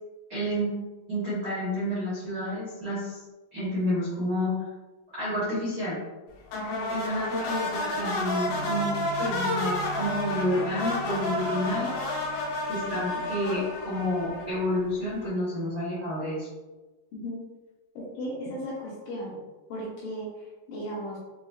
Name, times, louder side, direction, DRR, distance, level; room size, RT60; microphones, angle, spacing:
voice 1, 0.3-0.7 1.1-3.2 3.5-4.5 5.1-6.0 6.9-11.9 12.6-16.5, left 1 dB, 85° right, -11 dB, 0.9 m, -30 dB
sound 1, 6.5-15.0, left 2 dB, 90° left, 2.7 m, -31 dB
voice 2, 6.5-6.9 17.1-17.4 18.1-19.4 19.7-21.2, equal, 70° left, -5 dB, 2.3 m, -36 dB
sound 2, 8.4-13.3, right 9 dB, 65° right, 2.2 m, -41 dB
6.1 x 2.7 x 2.4 m, 1.2 s
omnidirectional pair, 4.3 m